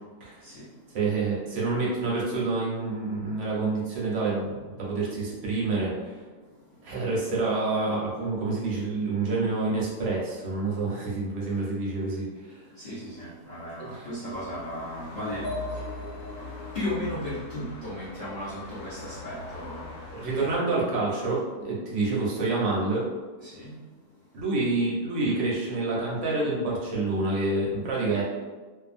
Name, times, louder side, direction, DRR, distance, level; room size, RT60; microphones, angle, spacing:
voice 1, 0.4-1.0 6.9-7.0 12.6-20.0 23.4-23.8, left 1 dB, 40° left, -12 dB, 0.7 m, -36 dB
voice 2, 0.9-6.1 6.8-12.5 13.9-14.0 20.1-23.0 24.3-28.2, right 3 dB, 60° right, -4 dB, 0.8 m, -28 dB
sound 1, 14.3-20.6, left 2 dB, 85° left, 1.2 m, -42 dB
sound 2, 15.4-19.1, left 2 dB, 60° left, 1.2 m, -40 dB
2.7 x 2.3 x 2.5 m, 1.3 s
omnidirectional pair, 1.8 m